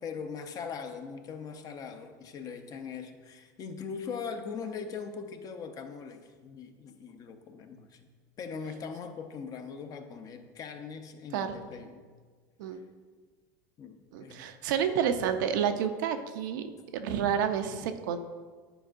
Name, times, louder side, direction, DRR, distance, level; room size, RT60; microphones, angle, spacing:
voice 1, 0.0-8.0 8.4-12.0 12.7-12.8 13.8-14.5, left 6 dB, 35° left, 7 dB, 0.6 m, -41 dB
voice 2, 11.3-11.7 12.6-12.8 14.1-18.2, right 8 dB, 80° right, 7 dB, 0.6 m, -30 dB
10.0 x 4.5 x 2.5 m, 1.5 s
supercardioid pair, 120°, 10 cm